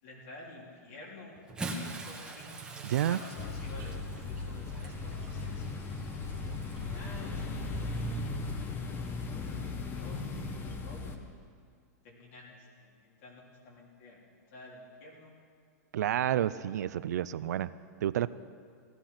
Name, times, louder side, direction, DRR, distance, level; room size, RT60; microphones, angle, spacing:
voice 1, 0.0-2.5 3.0-5.6 6.4-7.7 8.5-9.0 9.3-10.2 10.6-11.3 12.0-14.2 14.5-15.3, left 2 dB, 55° left, -3 dB, 3.6 m, -50 dB
Bathtub (filling or washing) / Splash splatter, 1.4-7.0 7.9-8.1 9.5-9.6, right 2 dB, 10° right, 1.6 m, -43 dB
sound 1, 2.4-8.3, right 9 dB, 45° right, 1.3 m, -49 dB
voice 2, 2.8-3.2 15.9-17.7 18.0-18.3, right 11 dB, 80° right, 17 dB, 0.5 m, -29 dB
sound 2, 3.4-11.2, left 3 dB, 25° left, 1.1 m, -37 dB
16.0 x 12.0 x 5.8 m, 2.2 s
hypercardioid pair, 135°, 9 cm